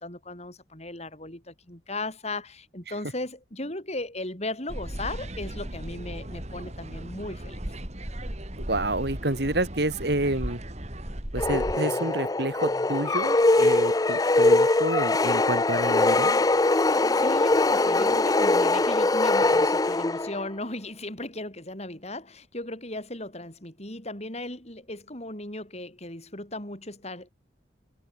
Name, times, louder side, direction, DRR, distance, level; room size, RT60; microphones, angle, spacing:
voice 1, 0.0-7.6 16.8-27.3, left 2 dB, 35° left, 7.8 m, -36 dB
sound 1, 4.7-11.8, right 1 dB, 40° right, 3.7 m, -36 dB
voice 2, 8.6-10.6 11.3-16.3, right 1 dB, 60° right, 3.3 m, -29 dB
sound 2, 11.4-20.5, left 2 dB, 20° left, 0.6 m, -22 dB
head